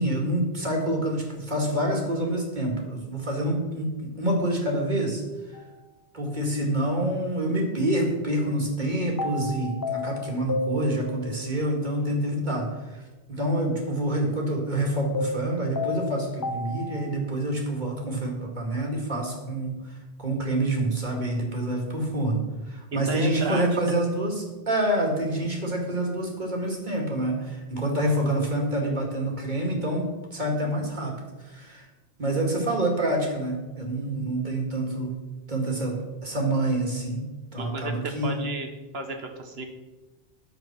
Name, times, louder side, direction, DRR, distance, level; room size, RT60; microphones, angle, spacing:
voice 1, 0.0-5.2 6.1-13.0 13.3-19.7 20.2-31.1 31.4-31.9 32.2-35.1 35.5-36.0 36.2-37.2 37.5-38.4, right 1 dB, 45° right, 0 dB, 2.4 m, -27 dB
sound 1, 5.5-5.7 9.2-11.5 15.1-17.1, left 2 dB, 20° left, 0.7 m, -32 dB
voice 2, 22.9-24.0 37.6-38.7 38.9-39.6, right 3 dB, 65° right, 5 dB, 1.6 m, -33 dB
10.5 x 7.6 x 6.0 m, 1.2 s
omnidirectional pair, 1.1 m